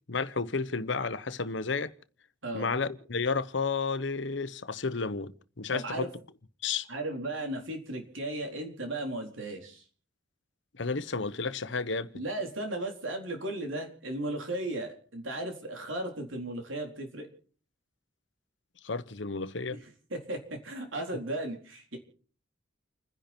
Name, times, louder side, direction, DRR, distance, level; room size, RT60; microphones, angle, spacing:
voice 1, 0.1-1.9 2.5-6.1 6.6-6.9 10.7-12.1 18.8-19.8, left 4 dB, 65° left, 1.0 m, -32 dB
voice 2, 2.4-2.7 5.7-6.1 6.9-9.8 12.1-17.3 19.7-19.9 20.1-22.0, right 1 dB, 85° right, 4.0 m, -35 dB
29.5 x 10.5 x 4.4 m
head